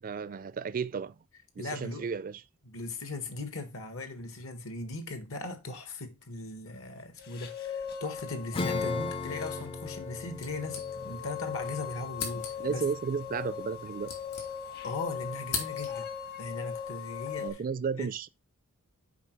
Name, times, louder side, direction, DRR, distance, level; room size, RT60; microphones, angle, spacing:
voice 1, 0.0-1.2 1.6-2.4 12.6-14.1 17.4-18.3, right 6 dB, 40° right, 0.4 m, -33 dB
voice 2, 1.6-2.0 2.6-12.8 14.8-16.1 16.4-17.6 18.0-18.1, left 2 dB, 65° left, 1.5 m, -38 dB
sound 1, 7.2-17.5, left 7 dB, 45° left, 1.3 m, -38 dB
Acoustic guitar / Strum, 8.5-14.5, left 2 dB, 25° left, 0.5 m, -40 dB
sound 2, 10.4-11.4 11.6-11.7 12.1-12.8 13.6-14.9 15.2-16.2, left 5 dB, 90° left, 2.7 m, -39 dB
7.0 x 5.1 x 4.6 m
head